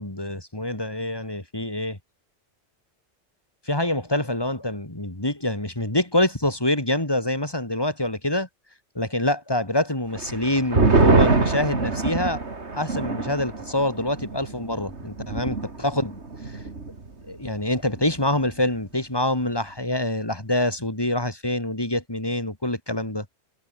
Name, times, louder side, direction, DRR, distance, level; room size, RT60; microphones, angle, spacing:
voice 1, 0.0-2.0 3.7-8.5 8.9-12.4 12.8-16.2 16.4-16.6 17.3-23.2, left 1 dB, 20° left, 3.2 m, -26 dB
sound 1, 10.2-17.1 17.4-17.5 17.9-18.3, right 3 dB, 70° right, 3.1 m, -24 dB
omnidirectional pair, 1.2 m